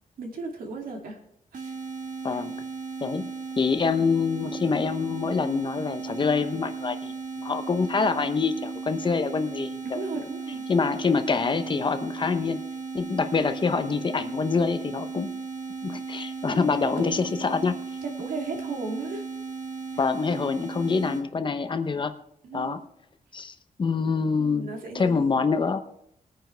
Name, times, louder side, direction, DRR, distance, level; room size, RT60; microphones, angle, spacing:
voice 1, 0.2-1.2 1.5-1.8 9.8-10.6 17.0-17.2 18.0-19.3 22.4-22.9 24.3-25.5, right 3 dB, 85° right, 1 dB, 2.5 m, -35 dB
sound 1, 1.5-21.2, right 5 dB, 60° right, 1.5 m, -36 dB
voice 2, 3.0-10.3 10.7-12.6 12.9-15.3 15.8-17.8 20.0-22.1 22.5-22.8 23.3-24.7 24.9-25.8, left 5 dB, 35° left, 10 dB, 0.8 m, -26 dB
20.5 x 9.3 x 3.4 m, 0.74 s
wide cardioid pair, 140°, 14 cm